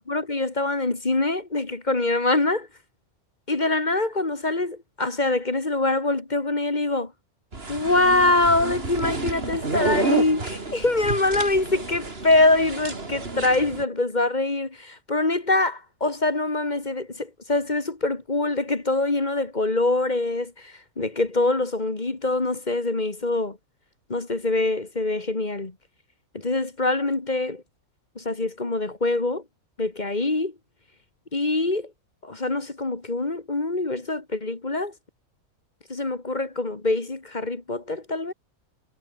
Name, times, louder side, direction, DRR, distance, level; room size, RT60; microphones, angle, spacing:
voice 1, 0.1-2.7 3.5-7.1 7.7-23.6 24.1-25.8 26.3-27.6 28.2-29.4 29.8-30.6 31.3-31.9 32.2-34.9 35.9-38.3, left 2 dB, 30° left, 2.0 m, -24 dB
sound 1, 7.5-13.8, right 3 dB, 40° right, 3.1 m, -30 dB
omnidirectional pair, 1.5 m